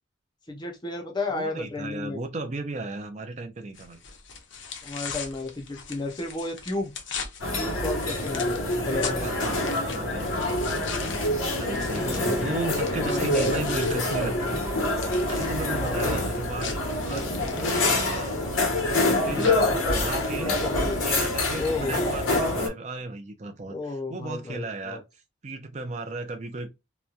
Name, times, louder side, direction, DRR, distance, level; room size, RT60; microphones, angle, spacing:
voice 1, 0.5-2.2 4.8-6.9 7.6-9.3 11.9-12.4 13.0-14.5 15.7-16.3 19.3-21.1 21.6-22.1 23.7-25.0, left 2 dB, 20° left, 0.6 m, -33 dB
voice 2, 1.3-4.0 8.7-10.9 11.6-14.7 15.3-20.6 21.0-26.7, right 2 dB, 35° right, 0.5 m, -36 dB
sound 1, 3.7-14.0 14.3-20.4, left 6 dB, 65° left, 0.7 m, -40 dB
sound 2, 7.4-22.7, left 2 dB, 85° left, 1.1 m, -26 dB
2.9 x 2.2 x 2.4 m
head